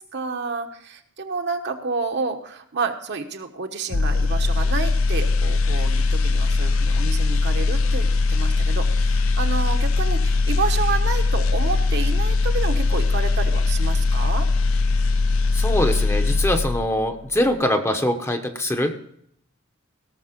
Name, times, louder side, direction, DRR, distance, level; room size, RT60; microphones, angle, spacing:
voice 1, 0.0-14.5, right 4 dB, 55° right, 4 dB, 1.2 m, -29 dB
sound 1, 3.9-17.0 17.4-17.6, left 3 dB, 70° left, 0.6 m, -20 dB
voice 2, 15.5-19.1, left 1 dB, 15° left, 5 dB, 0.9 m, -23 dB
17.0 x 6.7 x 5.1 m, 0.69 s
head